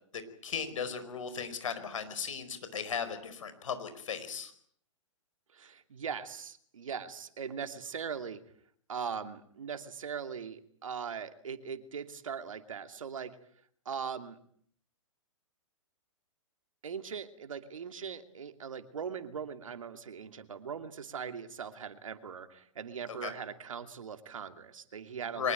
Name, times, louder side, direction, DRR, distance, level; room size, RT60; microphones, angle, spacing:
voice 1, 0.1-4.5 23.2-23.3 25.3-25.5, left 6 dB, 75° left, 11 dB, 4.9 m, -36 dB
voice 2, 5.5-8.4 8.9-13.4 13.8-14.4 16.8-25.5, right 7 dB, 75° right, 9 dB, 2.6 m, -40 dB
24.0 x 20.5 x 9.2 m, 0.62 s
hypercardioid pair, 120°, 17 cm